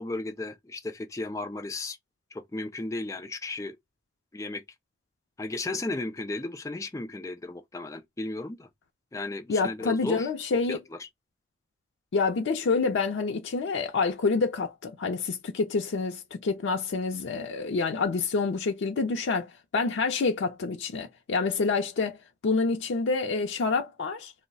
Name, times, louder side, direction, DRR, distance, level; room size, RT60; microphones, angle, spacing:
voice 1, 0.0-2.0 2.3-3.8 4.3-4.6 5.4-8.7 9.1-10.3 10.7-11.1, left 2 dB, 15° left, 0.4 m, -34 dB
voice 2, 9.5-10.8 12.1-24.3, left 4 dB, 85° left, 0.4 m, -27 dB
2.3 x 2.0 x 3.8 m
head